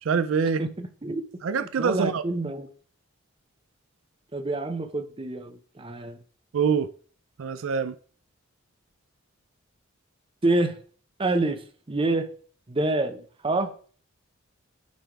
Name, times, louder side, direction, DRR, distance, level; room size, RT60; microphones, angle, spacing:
voice 1, 0.0-0.6 1.4-2.2 6.5-6.9 7.4-7.9, right 6 dB, 75° right, 0.4 m, -24 dB
voice 2, 0.6-1.2 1.8-2.7 4.3-6.2 10.4-10.8 11.2-11.6 11.9-12.3 12.7-13.7, right 2 dB, 25° right, 0.7 m, -27 dB
9.4 x 3.4 x 4.5 m
head